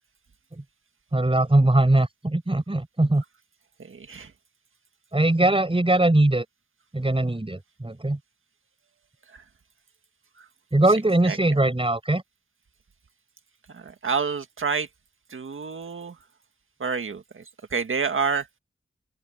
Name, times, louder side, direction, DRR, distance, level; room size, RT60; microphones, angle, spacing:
voice 1, 1.1-3.2 5.1-6.4 6.9-8.2 10.7-12.2, right 2 dB, 25° right, 6.5 m, -21 dB
voice 2, 3.9-4.3 11.3-11.4 13.7-14.9 15.3-16.1 16.8-17.4 17.7-18.5, right 5 dB, 90° right, 1.8 m, -28 dB
open air
wide cardioid pair, 60°, 20 cm